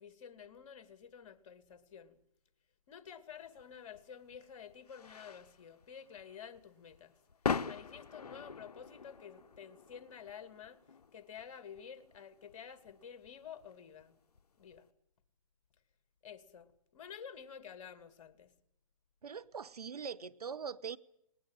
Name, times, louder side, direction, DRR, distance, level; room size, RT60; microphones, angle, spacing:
voice 1, 0.0-2.2 2.9-7.2 7.7-10.8 11.1-14.2 14.6-14.9 16.2-18.5, left 7 dB, 55° left, 2.6 m, -51 dB
sound 1, 3.5-14.8, left 5 dB, 85° left, 0.8 m, -44 dB
voice 2, 19.2-21.0, right 6 dB, 85° right, 1.0 m, -42 dB
20.0 x 19.0 x 8.9 m
hypercardioid pair, 130°, 19 cm